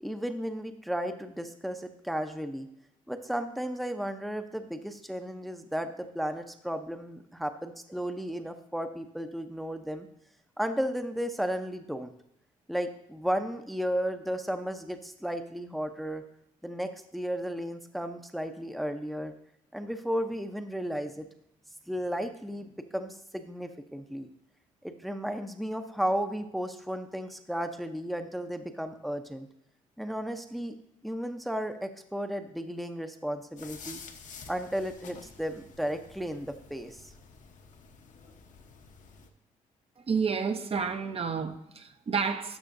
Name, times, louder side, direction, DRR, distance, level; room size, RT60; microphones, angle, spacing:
voice 1, 0.0-2.7 3.1-10.1 10.6-12.1 12.7-16.2 16.6-19.3 19.7-21.3 21.9-24.3 24.8-29.5 30.0-30.8 31.0-34.0 34.5-37.1, equal, ahead, 0.7 m, -34 dB
sound 1, 33.6-39.3, left 5 dB, 60° left, 1.0 m, -50 dB
voice 2, 40.1-42.6, right 5 dB, 45° right, 0.8 m, -30 dB
12.5 x 6.0 x 2.6 m
supercardioid pair, 70°, 14 cm